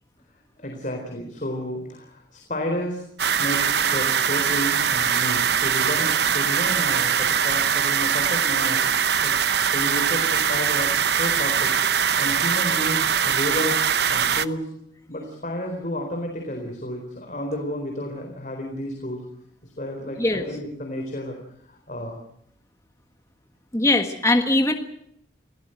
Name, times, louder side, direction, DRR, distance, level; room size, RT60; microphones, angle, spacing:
voice 1, 0.6-3.0 3.3-11.7 12.2-13.8 14.1-14.7 15.1-19.3 19.6-21.4 21.7-22.2, equal, 40° left, 2 dB, 4.1 m, -31 dB
sound 1, 3.2-14.5, right 7 dB, 60° right, 0.9 m, -22 dB
voice 2, 23.7-24.7, left 2 dB, 15° left, 5 dB, 1.5 m, -20 dB
27.5 x 17.5 x 7.9 m, 0.72 s
head